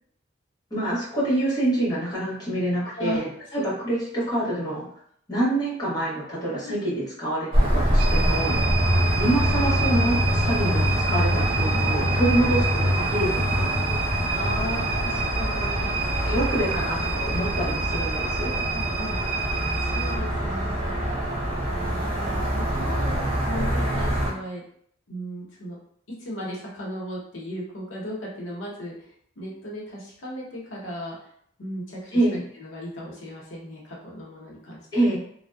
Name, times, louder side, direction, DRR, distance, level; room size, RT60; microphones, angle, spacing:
voice 1, 0.7-4.8 5.3-6.9 7.2-8.6 9.2-13.7 16.2-18.6 32.1-32.4 34.9-35.2, right 1 dB, 20° left, -9 dB, 0.9 m, -26 dB
voice 2, 6.6-7.1 8.4-8.8 10.4-10.6 14.3-15.9 18.4-19.2 19.8-21.2 21.7-24.6 25.1-25.8 26.1-31.2 31.6-32.2 32.5-34.8, equal, 85° left, -4 dB, 0.8 m, -36 dB
sound 1, 7.5-24.3, equal, 30° right, 0.6 m, -24 dB
sound 2, 8.0-20.2, right 6 dB, 75° right, 0.4 m, -30 dB
2.6 x 2.1 x 2.2 m, 0.65 s
head